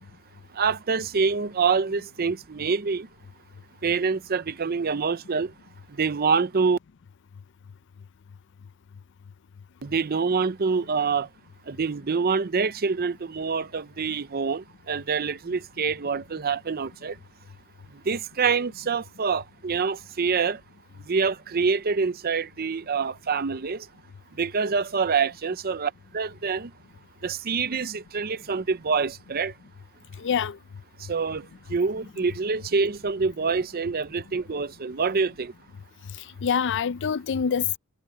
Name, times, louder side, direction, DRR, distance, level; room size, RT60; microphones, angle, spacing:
voice 1, 0.5-3.1 3.8-5.5 6.0-6.8 9.8-11.3 11.7-17.2 18.1-20.6 21.1-23.9 24.4-26.7 27.2-29.5 31.1-35.5, right 5 dB, 45° right, 0.6 m, -26 dB
voice 2, 30.2-30.6 36.4-37.8, left 7 dB, 55° left, 0.4 m, -25 dB
head